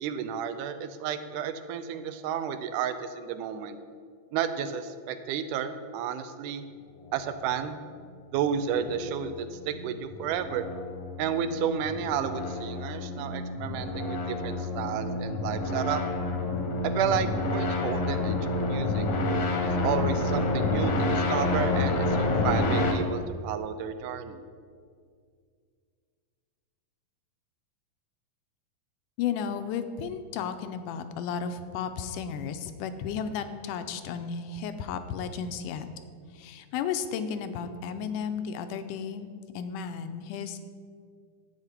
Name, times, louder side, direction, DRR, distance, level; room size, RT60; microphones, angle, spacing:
voice 1, 0.0-3.8 4.3-6.6 7.1-7.8 8.3-10.7 11.2-16.0 16.8-18.4 18.6-19.1 19.6-24.4, right 8 dB, 80° right, 10 dB, 2.0 m, -32 dB
sound 1, 8.4-22.9, left 2 dB, 60° left, 1.6 m, -29 dB
voice 2, 29.2-35.9 36.3-40.6, left 7 dB, 85° left, 9 dB, 2.1 m, -33 dB
10.5 x 8.4 x 4.4 m, 2.1 s
omnidirectional pair, 3.7 m